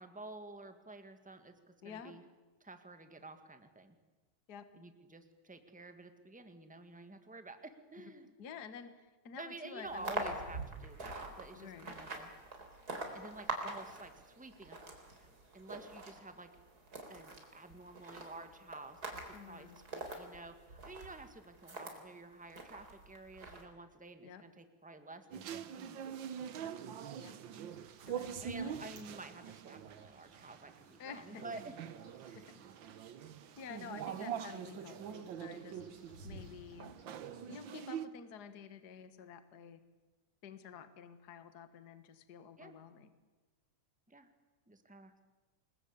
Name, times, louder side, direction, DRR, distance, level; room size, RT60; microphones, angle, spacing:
voice 1, 0.0-2.2 2.6-3.9 4.7-8.3 9.4-12.3 13.1-14.8 15.2-15.3 15.5-16.5 17.1-26.0 28.4-31.7 32.2-32.5 34.1-34.5 42.6-42.7 44.1-44.3 44.7-45.3, right 3 dB, 5° right, 8 dB, 0.9 m, -51 dB
voice 2, 1.8-2.1 4.5-4.7 8.4-10.3 11.5-11.9 19.3-19.8 24.2-24.4 26.6-26.7 27.2-27.3 28.1-28.7 31.0-31.6 32.3-32.6 33.6-35.8 36.2-36.9 37.4-39.8 40.4-43.1, left 7 dB, 40° left, 11 dB, 1.6 m, -50 dB
sound 1, 9.9-22.0 22.5-23.6, right 2 dB, 30° right, 4.0 m, -45 dB
sound 2, 25.3-38.0, right 8 dB, 80° right, 1.0 m, -44 dB
sound 3, 27.5-37.5, right 1 dB, 45° right, 5.2 m, -59 dB
28.0 x 21.0 x 8.5 m, 1.2 s
omnidirectional pair, 3.6 m